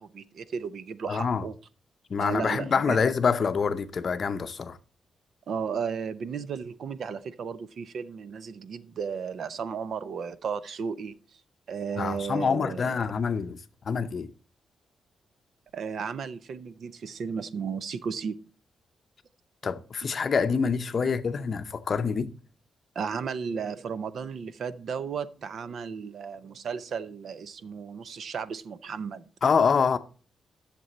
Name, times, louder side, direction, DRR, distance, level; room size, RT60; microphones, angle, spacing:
voice 1, 0.0-1.5 2.2-3.0 5.5-11.2 11.7-13.1 15.7-18.4 21.0-21.1 23.0-29.2, right 6 dB, 55° right, 0.6 m, -34 dB
voice 2, 1.1-1.4 2.1-4.8 12.0-14.3 19.6-22.3 29.4-30.0, left 5 dB, 40° left, 0.6 m, -26 dB
11.0 x 6.8 x 4.0 m
wide cardioid pair, 165°, 0 cm